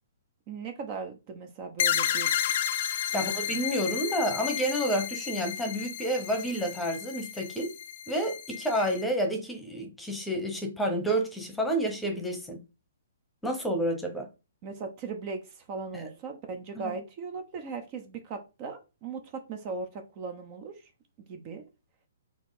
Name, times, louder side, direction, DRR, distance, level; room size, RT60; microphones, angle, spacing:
voice 1, 0.5-2.5 3.1-3.4 14.6-20.8 21.2-21.6, right 4 dB, 35° right, 0.9 m, -38 dB
sound 1, 1.8-9.0, left 10 dB, 50° left, 0.5 m, -32 dB
voice 2, 3.1-7.7 8.1-12.6 13.4-14.3 15.9-16.1 16.7-16.9, right 1 dB, 5° left, 1.1 m, -29 dB
4.3 x 2.8 x 4.1 m
hypercardioid pair, 145°, 0 cm